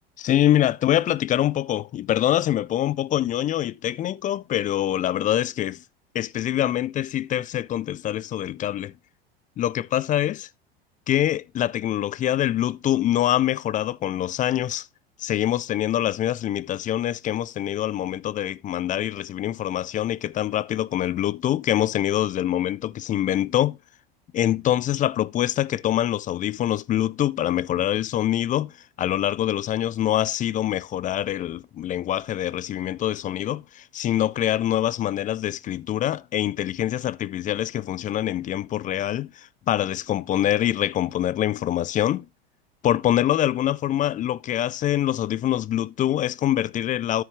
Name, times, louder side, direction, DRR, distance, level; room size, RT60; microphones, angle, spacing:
voice 1, 0.2-5.8 6.1-8.9 9.6-10.5 11.1-14.9 15.2-23.8 24.3-42.3 42.8-47.2, left 12 dB, 25° left, 0.4 m, -24 dB
13.5 x 4.8 x 3.1 m
hypercardioid pair, 90°, 30 cm